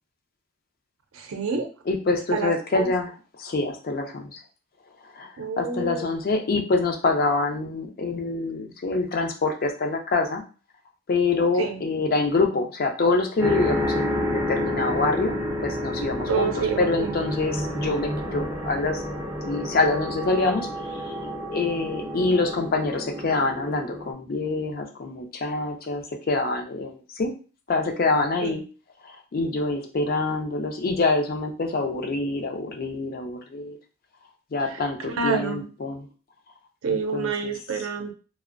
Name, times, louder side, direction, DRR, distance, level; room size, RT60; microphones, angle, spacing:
voice 1, 1.1-1.7 2.3-2.9 5.4-6.0 11.6-11.8 16.3-17.1 28.4-28.6 34.7-34.8 35.1-35.7 36.8-38.1, right 5 dB, 85° right, 6 dB, 0.5 m, -28 dB
voice 2, 1.9-4.4 5.1-10.4 11.1-15.3 15.6-16.5 16.8-19.0 19.4-21.3 21.5-27.3 27.7-28.6 29.0-33.8 34.5-36.1 36.9-37.5, left 3 dB, 45° left, 2 dB, 0.4 m, -26 dB
sound 1, 13.4-24.1, left 1 dB, 15° right, 0.4 m, -30 dB
2.5 x 2.0 x 2.4 m, 0.36 s
head